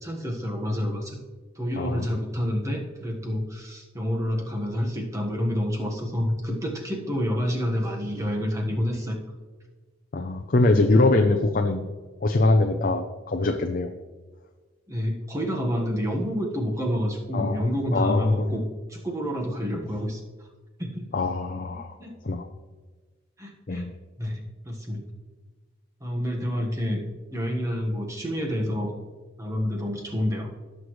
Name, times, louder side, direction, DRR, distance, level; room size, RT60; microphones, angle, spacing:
voice 1, 0.0-1.2 1.6-9.2 14.9-18.6 18.9-20.2 20.8-21.0 21.7-22.1 23.4-23.8 24.2-25.0 26.0-27.0 27.3-29.0 29.4-30.5, equal, 15° right, 1 dB, 1.4 m, -28 dB
voice 2, 1.8-2.1 10.1-11.8 12.2-13.9 17.3-17.6 17.9-18.5 21.1-21.9 22.2-22.5 23.7-23.9, left 2 dB, 45° left, 5 dB, 0.6 m, -23 dB
17.5 x 6.6 x 3.2 m, 1.4 s
head